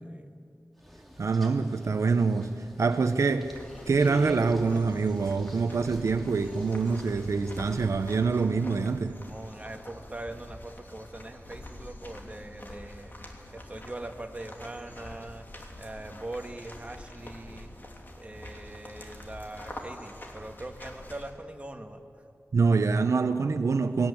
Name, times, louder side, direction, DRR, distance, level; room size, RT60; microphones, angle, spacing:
sound 1, 0.8-8.2, equal, ahead, 2.9 m, -47 dB
voice 1, 1.2-2.5 2.8-3.6 3.9-9.2 22.5-24.1, right 4 dB, 75° right, 0.8 m, -25 dB
sound 2, 3.5-21.3, left 1 dB, 40° left, 3.1 m, -46 dB
voice 2, 9.2-13.1 13.5-15.5 15.8-17.7 18.2-22.0, right 1 dB, 25° right, 1.8 m, -41 dB
21.5 x 18.0 x 8.5 m
wide cardioid pair, 95°, 5 cm